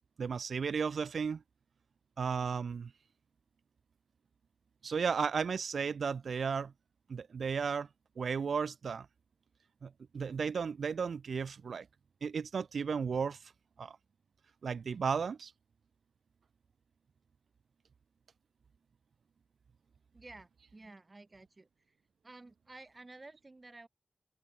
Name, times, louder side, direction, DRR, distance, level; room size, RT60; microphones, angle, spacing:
voice 1, 0.2-1.4 2.2-2.9 4.8-6.7 7.1-7.9 8.2-9.1 9.8-11.9 12.2-13.5 13.8-14.0 14.6-15.5, right 6 dB, 85° right, 0.5 m, -34 dB
voice 2, 20.1-22.0 22.2-23.9, right 2 dB, 30° right, 3.7 m, -53 dB
open air
wide cardioid pair, 80°, 0 cm